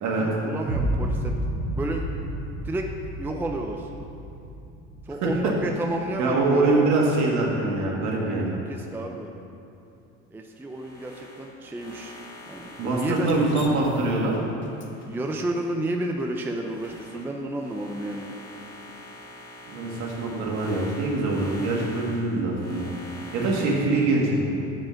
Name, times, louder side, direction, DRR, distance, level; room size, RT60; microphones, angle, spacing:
voice 1, 0.2-1.4 1.7-2.0 2.6-2.9 3.2-3.9 5.0-6.9 8.7-9.3 10.3-12.1 12.5-13.5 15.1-18.3 23.9-24.0, right 1 dB, 5° right, 2 dB, 0.4 m, -31 dB
sound 1, 0.7-6.7, right 1 dB, 30° right, 1.5 m, -31 dB
voice 2, 6.2-8.5 12.8-14.3 19.7-22.9 23.3-24.5, right 2 dB, 65° right, -3 dB, 1.8 m, -24 dB
sound 2, 10.6-15.7 16.1-24.0, left 1 dB, 15° left, 1.9 m, -45 dB
Drip, 13.2-17.3, left 4 dB, 40° left, 0.8 m, -41 dB
7.2 x 5.1 x 5.7 m, 2.7 s
supercardioid pair, 105°, 30 cm